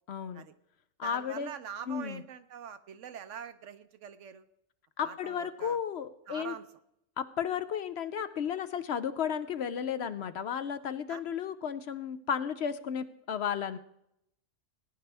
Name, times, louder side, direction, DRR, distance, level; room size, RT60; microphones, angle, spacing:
voice 1, 0.1-0.4 1.0-1.5 1.9-2.2 5.0-6.5 7.2-13.8, left 8 dB, 60° left, 12 dB, 0.8 m, -33 dB
voice 2, 1.0-4.4 5.0-5.8 6.3-6.6 11.1-11.2, right 8 dB, 70° right, 11 dB, 1.1 m, -44 dB
18.5 x 10.5 x 3.4 m, 0.77 s
omnidirectional pair, 1.3 m